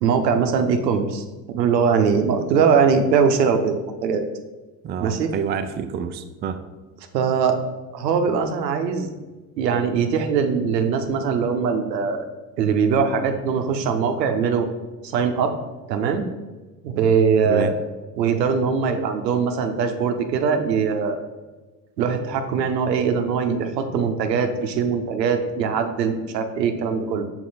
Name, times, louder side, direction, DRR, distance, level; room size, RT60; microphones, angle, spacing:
voice 1, 0.0-3.8 4.0-4.2 5.0-5.3 7.1-7.6 7.9-9.1 9.6-12.2 12.6-14.7 15.0-15.5 15.9-16.3 16.8-17.7 18.2-21.2 22.0-27.2, right 6 dB, 80° right, 6 dB, 0.8 m, -21 dB
voice 2, 4.8-6.6 17.5-17.7, right 7 dB, 25° right, 8 dB, 0.4 m, -28 dB
5.9 x 4.4 x 4.1 m, 1.2 s
hypercardioid pair, 70°, 49 cm